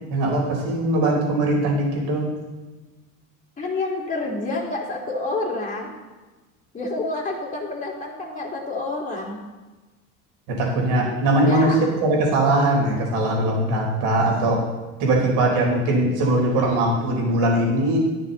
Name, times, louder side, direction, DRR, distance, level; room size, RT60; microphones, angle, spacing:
voice 1, 0.1-2.3 10.5-14.7 15.0-18.0, right 1 dB, 65° right, -1 dB, 4.2 m, -21 dB
voice 2, 3.6-5.9 6.7-9.4 11.4-11.8, left 2 dB, 15° left, -3 dB, 2.9 m, -28 dB
12.5 x 9.4 x 4.0 m, 1.2 s
supercardioid pair, 100°, 43 cm